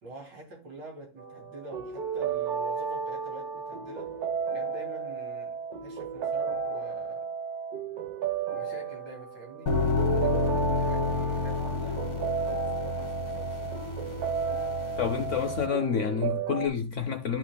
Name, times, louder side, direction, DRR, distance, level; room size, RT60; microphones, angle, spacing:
voice 1, 0.0-4.2 4.5-7.3 8.5-9.8 10.1-12.3 12.8-13.8, right 2 dB, 75° right, 3.3 m, -46 dB
sound 1, 1.2-16.7, right 6 dB, 60° right, 1.5 m, -33 dB
sound 2, 9.7-15.7, left 4 dB, 45° left, 1.6 m, -30 dB
voice 2, 15.0-17.4, left 7 dB, 70° left, 0.7 m, -28 dB
11.5 x 5.8 x 2.2 m
omnidirectional pair, 2.0 m